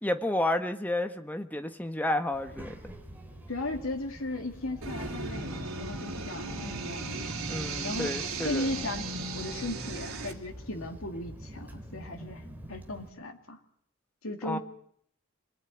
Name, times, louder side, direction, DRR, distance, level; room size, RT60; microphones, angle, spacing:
voice 1, 0.0-2.8 7.5-8.7 14.4-14.6, left 1 dB, 10° left, 7 dB, 1.3 m, -31 dB
Child speech kid speaking, 2.3-13.1, equal, 10° right, 3.2 m, -45 dB
voice 2, 3.5-7.2 7.8-12.4 12.7-13.6 14.2-14.6, left 2 dB, 75° left, 3 dB, 2.3 m, -36 dB
sound 1, 4.8-10.3, right 3 dB, 75° right, 3.4 m, -36 dB
26.5 x 18.0 x 9.1 m, 0.69 s
head